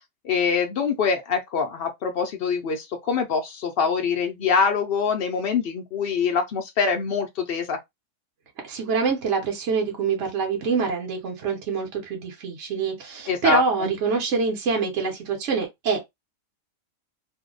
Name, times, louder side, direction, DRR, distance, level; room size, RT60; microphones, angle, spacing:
voice 1, 0.2-7.8 13.3-13.9, left 6 dB, 90° left, 0.5 m, -24 dB
voice 2, 8.6-16.1, right 5 dB, 55° right, 1.0 m, -25 dB
2.7 x 2.1 x 3.7 m
omnidirectional pair, 1.6 m